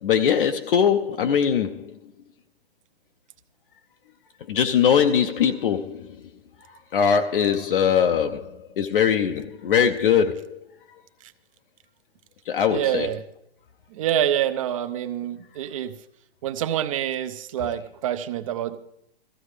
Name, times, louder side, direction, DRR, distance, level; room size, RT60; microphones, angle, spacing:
voice 1, 0.0-1.9 4.5-6.1 6.9-10.6 12.5-13.2 17.6-17.7, left 8 dB, 55° left, 0.7 m, -21 dB
voice 2, 12.7-13.2 13.9-15.9 16.4-18.8, right 11 dB, 30° right, 0.6 m, -26 dB
17.0 x 15.0 x 3.3 m
hypercardioid pair, 150°, 32 cm